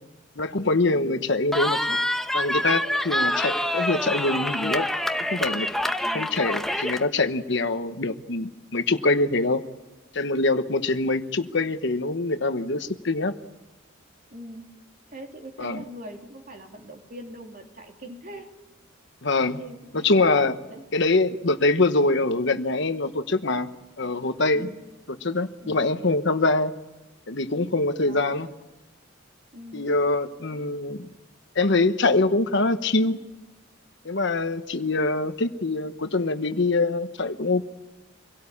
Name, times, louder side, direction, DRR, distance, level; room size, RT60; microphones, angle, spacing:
voice 1, 0.4-2.0 2.3-4.9 5.3-5.7 6.1-9.6 10.1-13.3 15.6-15.8 19.2-19.6 19.9-20.6 20.9-23.7 24.0-24.7 25.2-26.7 27.3-28.5 29.7-31.1 31.5-33.2 34.0-37.6, left 2 dB, 60° left, 9 dB, 1.1 m, -24 dB
voice 2, 0.9-1.3 6.0-6.4 14.3-14.6 15.1-18.5 19.6-20.1 20.7-20.8 24.5-24.8 25.6-25.9 28.0-28.3 29.5-29.9 30.5-30.6, right 1 dB, 45° right, 2 dB, 3.1 m, -42 dB
Cheering, 1.5-7.0, left 1 dB, ahead, 0.9 m, -26 dB
25.5 x 17.5 x 8.6 m, 1.1 s
head